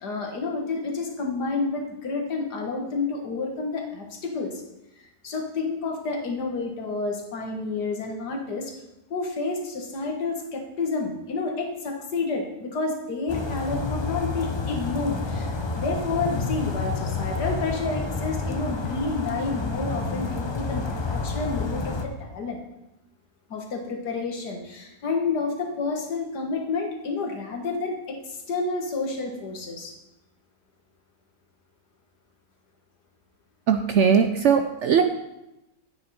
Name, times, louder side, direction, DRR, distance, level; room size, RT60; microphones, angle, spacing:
voice 1, 0.0-4.6 5.0-8.8 9.1-22.6 23.5-30.0, left 3 dB, 80° left, 2 dB, 2.0 m, -30 dB
sound 1, 13.3-22.1, left 3 dB, 35° left, 0.4 m, -29 dB
voice 2, 33.7-35.0, right 7 dB, 65° right, 6 dB, 0.7 m, -19 dB
9.6 x 8.9 x 4.2 m, 0.92 s
omnidirectional pair, 1.7 m